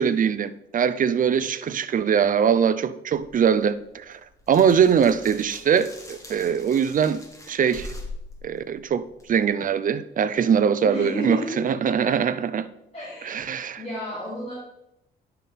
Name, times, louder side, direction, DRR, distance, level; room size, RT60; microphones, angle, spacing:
voice 1, 0.0-4.2 4.5-7.2 7.5-7.9 8.4-12.7 13.2-13.8, right 7 dB, 45° right, 0.5 m, -22 dB
sound 1, 3.2-9.5, left 2 dB, 15° left, 1.5 m, -43 dB
voice 2, 10.8-11.6 12.9-13.4 13.8-14.5, left 1 dB, 30° left, 3.3 m, -32 dB
10.5 x 5.8 x 3.6 m
cardioid pair, 90°, 20 cm